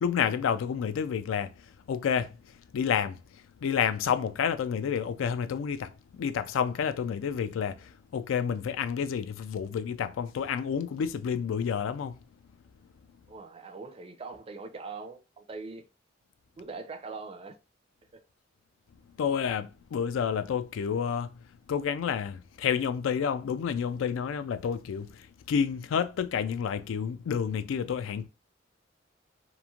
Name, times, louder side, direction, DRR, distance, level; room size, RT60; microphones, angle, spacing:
voice 1, 0.0-1.5 1.9-2.4 2.7-3.2 3.6-12.2 19.2-21.4 21.7-28.3, left 7 dB, 90° left, 0.3 m, -29 dB
voice 2, 13.3-15.8 16.6-17.6, right 4 dB, 30° right, 0.4 m, -42 dB
3.0 x 2.5 x 2.3 m
head